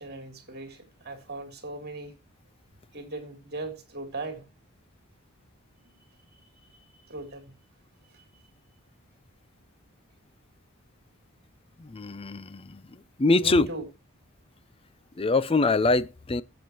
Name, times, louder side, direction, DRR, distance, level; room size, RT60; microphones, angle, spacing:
voice 1, 0.0-2.1 2.9-4.4 7.1-7.5 8.1-8.2 13.4-13.8, right 2 dB, 50° right, 3.1 m, -38 dB
voice 2, 11.8-13.7 15.2-16.4, left 3 dB, 25° left, 0.5 m, -24 dB
18.5 x 7.9 x 2.9 m
head